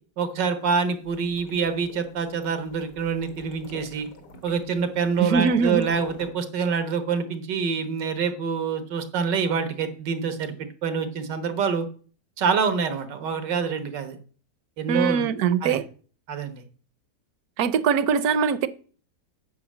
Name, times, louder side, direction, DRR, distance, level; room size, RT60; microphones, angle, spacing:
voice 1, 0.2-4.1 4.4-11.9 12.4-14.2 14.8-15.3 15.6-15.8 16.3-16.6, right 6 dB, 90° right, 1.8 m, -26 dB
sound 1, 0.8-6.3, left 2 dB, 80° left, 2.2 m, -45 dB
voice 2, 5.2-5.9 14.9-15.8 17.6-18.7, right 6 dB, 65° right, 1.1 m, -22 dB
8.8 x 5.4 x 7.3 m
omnidirectional pair, 1.8 m